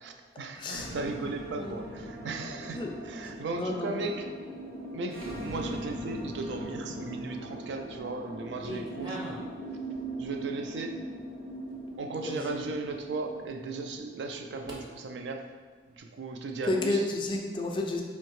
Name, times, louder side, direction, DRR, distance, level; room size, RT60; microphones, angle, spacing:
voice 1, 0.0-2.8 3.0-4.4 4.9-9.2 10.2-11.0 12.0-15.5 16.0-17.0, right 3 dB, 80° right, 5 dB, 0.4 m, -36 dB
voice 2, 0.6-0.9 1.6-1.8 2.7-3.0 3.5-4.1 12.2-12.5 16.7-18.0, left 2 dB, 25° left, 2 dB, 0.3 m, -31 dB
sound 1, 0.7-14.7, right 1 dB, 55° right, 1.0 m, -40 dB
sound 2, 6.4-6.8 7.4-8.0 8.3-9.5 9.9-10.4 11.0-11.1 11.7-11.8 12.4-12.5 14.7-14.8, right 1 dB, 25° right, 0.6 m, -42 dB
4.4 x 2.7 x 3.0 m, 1.5 s
head